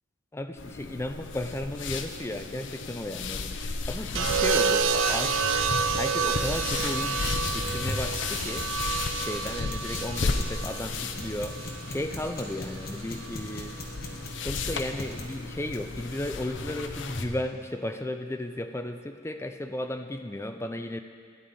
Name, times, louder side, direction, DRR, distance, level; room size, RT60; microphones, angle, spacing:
voice 1, 0.3-3.5 3.9-5.4 5.9-7.2 7.5-8.7 9.2-13.8 14.4-21.0, left 1 dB, 15° left, 7 dB, 0.4 m, -34 dB
sound 1, 0.6-17.3, left 4 dB, 65° left, 0.6 m, -35 dB
sound 2, 4.1-12.3 13.5-13.9, right 5 dB, 75° right, 0.5 m, -29 dB
sound 3, 5.4-17.3, left 1 dB, 50° left, 1.5 m, -40 dB
13.0 x 10.0 x 4.2 m, 2.1 s
head